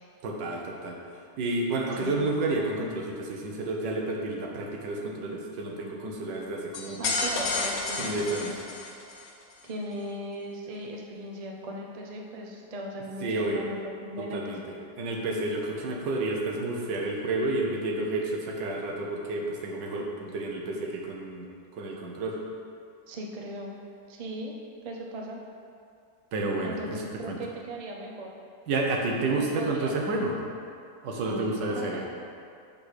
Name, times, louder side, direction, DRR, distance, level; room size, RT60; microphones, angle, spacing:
voice 1, 0.2-1.0 1.4-7.0 8.0-8.5 13.2-13.6 14.2-14.6 15.0-21.5 21.8-22.4 26.3-27.4 28.7-30.4 31.0-32.0, right 2 dB, 80° right, 0 dB, 1.6 m, -30 dB
sound 1, 6.7-9.3, left 3 dB, 90° left, 1.6 m, -31 dB
voice 2, 7.0-8.6 9.6-14.6 23.1-23.8 24.1-24.6 24.8-25.4 26.6-28.3 29.6-29.9 31.2-32.0, right 1 dB, 50° right, 0 dB, 0.4 m, -38 dB
6.8 x 3.9 x 6.4 m, 2.4 s
omnidirectional pair, 1.9 m